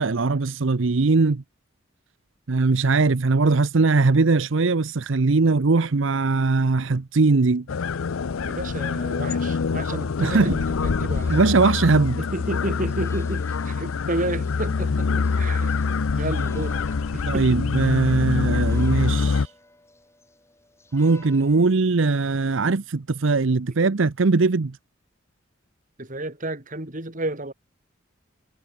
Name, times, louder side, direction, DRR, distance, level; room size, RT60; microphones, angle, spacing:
voice 1, 0.0-1.4 2.5-7.7 10.2-10.6 11.3-12.2 17.3-19.5 20.9-24.8, right 3 dB, 65° right, 0.7 m, -20 dB
sound 1, 7.7-19.5, left 5 dB, 85° left, 0.5 m, -25 dB
voice 2, 8.4-11.3 12.2-15.8 16.1-16.8 17.1-17.6 26.0-27.5, right 1 dB, 40° right, 3.3 m, -31 dB
sound 2, 10.2-21.9, left 2 dB, 15° left, 6.3 m, -53 dB
head